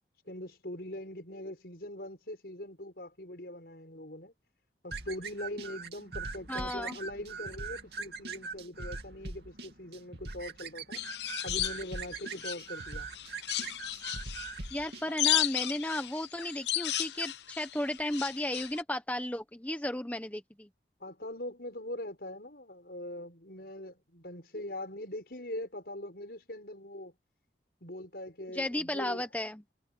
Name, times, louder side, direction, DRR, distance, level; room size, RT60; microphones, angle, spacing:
voice 1, 0.3-4.3 4.8-11.0 11.4-13.1 15.0-15.1 21.0-27.2 27.8-29.3, left 1 dB, 60° left, 5.9 m, -42 dB
sound 1, 4.9-15.0, right 4 dB, 70° right, 2.5 m, -41 dB
voice 2, 6.5-7.0 14.7-20.7 28.5-29.6, left 1 dB, 10° left, 0.9 m, -34 dB
sound 2, 11.0-12.8 13.1-18.8, left 13 dB, 80° left, 0.8 m, -34 dB
head